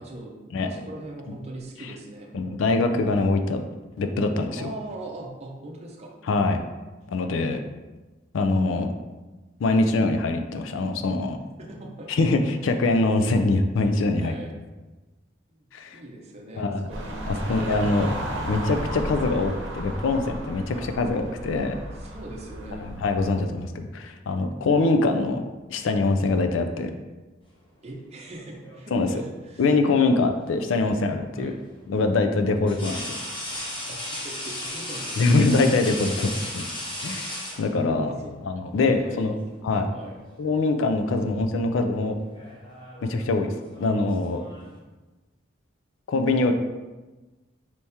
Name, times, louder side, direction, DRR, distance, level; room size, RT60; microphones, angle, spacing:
voice 1, 0.0-2.6 4.6-6.1 11.6-12.1 14.2-14.5 15.5-15.6 15.9-18.2 20.7-20.9 21.9-22.9 27.8-29.6 31.4-31.6 33.9-36.3 37.5-37.6 38.1-38.3 38.7-40.2, right 2 dB, 35° right, -2 dB, 0.6 m, -41 dB
voice 2, 0.5-0.9 2.3-3.6 4.0-4.7 6.3-6.6 7.1-7.6 8.3-8.9 9.6-11.4 12.1-14.4 15.7-16.0 16.6-16.8 17.3-18.1 18.5-21.8 22.7-25.4 25.7-26.9 28.9-29.1 29.6-31.5 31.9-33.2 35.2-36.6 37.0-37.3 37.6-38.1 38.4-39.3 39.6-39.9 40.4-42.2 43.0-44.4 46.1-46.5, left 3 dB, 75° left, 7 dB, 0.4 m, -23 dB
sound 1, 16.9-23.4, right 1 dB, 80° right, 0.8 m, -34 dB
sound 2, 28.4-29.2 31.0-31.1 32.7-38.1 39.3-39.5 39.9-40.7 41.0-41.3 42.2-44.8, left 1 dB, 25° left, 0.8 m, -36 dB
4.4 x 3.5 x 2.8 m, 1.2 s
head